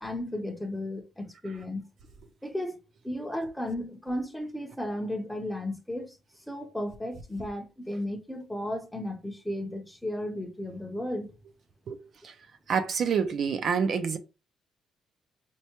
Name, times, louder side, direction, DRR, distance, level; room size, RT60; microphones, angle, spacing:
voice 1, 0.0-1.8 2.4-2.8 3.0-6.2 6.5-11.3, left 1 dB, 5° left, 0.6 m, -34 dB
voice 2, 12.7-14.2, right 6 dB, 45° right, 0.4 m, -27 dB
4.4 x 2.1 x 2.8 m
cardioid pair, 170°, 0 cm